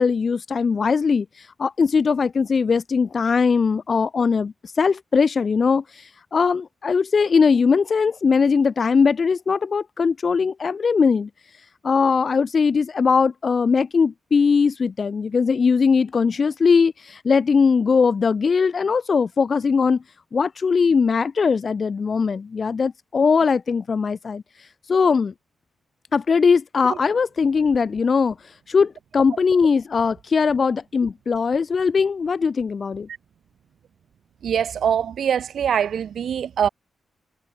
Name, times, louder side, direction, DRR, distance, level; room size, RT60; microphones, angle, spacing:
voice 1, 0.0-20.0 20.3-25.3 26.1-33.1, left 5 dB, 35° left, 5.1 m, -20 dB
voice 2, 34.4-36.7, right 8 dB, 65° right, 2.9 m, -23 dB
wide cardioid pair, 180°, 0 cm